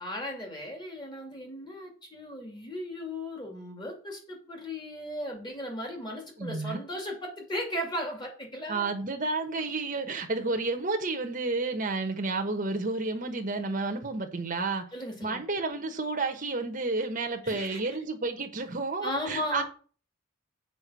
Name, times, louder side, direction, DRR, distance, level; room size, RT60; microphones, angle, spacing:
voice 1, 0.0-8.9 14.9-15.4 17.4-17.8 19.0-19.6, left 1 dB, 20° left, 2 dB, 2.4 m, -36 dB
voice 2, 6.4-6.8 8.7-14.8 15.2-19.6, right 3 dB, 35° right, 4 dB, 1.2 m, -31 dB
6.9 x 5.2 x 6.1 m, 0.40 s
head